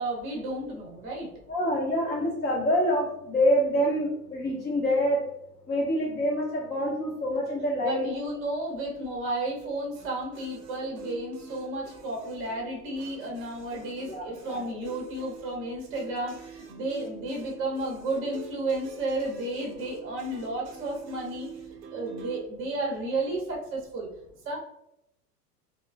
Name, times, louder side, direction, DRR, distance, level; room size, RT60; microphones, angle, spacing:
voice 1, 0.0-1.3 7.8-21.5 21.9-24.1 24.4-24.6, right 2 dB, 25° right, -1 dB, 0.8 m, -32 dB
voice 2, 1.5-5.2 5.7-8.1 14.1-14.6, equal, 20° left, -3 dB, 0.7 m, -26 dB
sound 1, 9.9-22.4, right 5 dB, 80° right, 0.6 m, -46 dB
3.0 x 2.0 x 2.3 m, 0.80 s
figure-of-eight pair, 90°, 48 cm